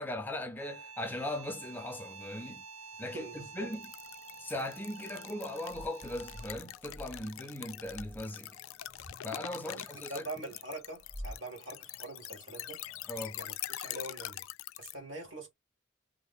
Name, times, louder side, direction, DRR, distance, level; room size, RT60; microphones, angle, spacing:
voice 1, 0.0-2.6 3.0-3.9 4.4-8.5 9.2-10.3 13.1-13.4, left 1 dB, 10° left, 0.5 m, -39 dB
sound 1, 0.6-6.8, right 4 dB, 85° right, 0.7 m, -49 dB
voice 2, 3.1-3.7 9.6-12.8 13.4-14.5 14.8-15.5, right 2 dB, 65° right, 1.9 m, -44 dB
sound 2, 3.7-15.0, left 14 dB, 80° left, 0.3 m, -44 dB
sound 3, 3.9-13.1, equal, 25° right, 0.8 m, -51 dB
3.5 x 2.1 x 3.6 m
head